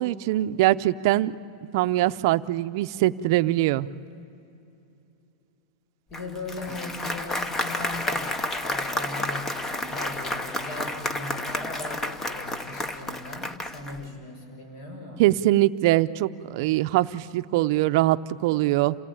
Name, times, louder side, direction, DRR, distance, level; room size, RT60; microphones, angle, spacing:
voice 1, 0.0-1.3 1.7-3.9 15.2-18.9, right 16 dB, 55° right, 12 dB, 0.6 m, -22 dB
voice 2, 6.1-8.4 8.6-15.2, left 2 dB, 60° left, 3 dB, 6.7 m, -38 dB
Applause, 6.1-14.0, left 2 dB, 15° left, 0.9 m, -31 dB
28.0 x 17.5 x 8.7 m, 2.9 s
supercardioid pair, 145°, 2 cm